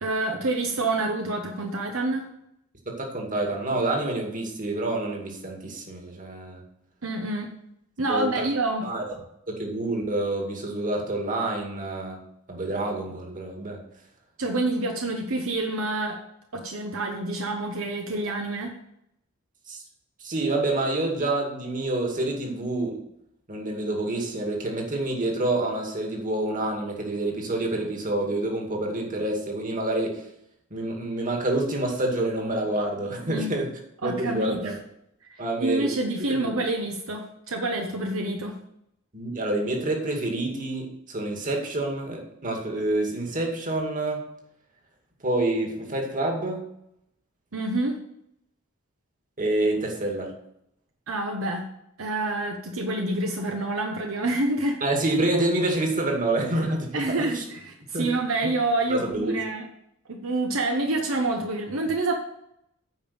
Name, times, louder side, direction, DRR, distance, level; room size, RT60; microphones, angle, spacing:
voice 1, 0.0-2.3 7.0-7.5 8.0-8.8 14.4-16.2 16.5-18.7 33.3-33.5 34.0-34.7 35.3-38.6 47.5-48.0 51.1-51.7 52.0-54.8 56.9-59.6 60.1-62.1, right 2 dB, 75° right, 3 dB, 1.0 m, -27 dB
voice 2, 2.9-6.6 8.1-8.5 8.8-9.0 9.5-12.2 12.5-13.8 19.7-19.8 20.2-23.0 23.5-30.2 30.7-33.7 34.0-34.7 35.4-35.9 36.3-36.6 39.1-44.2 45.2-46.6 49.4-50.3 54.8-57.4 57.9-58.1 58.9-59.4, right 2 dB, 40° right, 1 dB, 2.2 m, -27 dB
9.4 x 5.3 x 7.0 m, 0.78 s
head